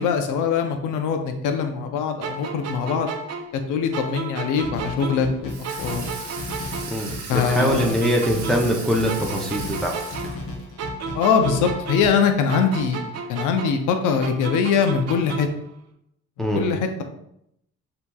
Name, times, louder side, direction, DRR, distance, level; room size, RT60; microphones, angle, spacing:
voice 1, 0.0-3.1 3.5-6.0 7.3-7.9 11.1-15.5 16.5-17.0, left 6 dB, 85° left, 5 dB, 0.5 m, -22 dB
sound 1, 2.2-5.4 5.6-8.8 9.1-12.2 12.5-15.6, right 5 dB, 55° right, 0.7 m, -33 dB
sound 2, 4.6-12.1, left 2 dB, 50° left, 0.9 m, -35 dB
Water tap faucet / Sink (filling or washing), 5.5-10.7, right 5 dB, 80° right, 1.3 m, -37 dB
voice 2, 6.9-10.0 16.4-16.6, equal, ahead, -1 dB, 0.6 m, -23 dB
6.6 x 2.8 x 2.2 m, 0.76 s
cardioid pair, 90°, 30 cm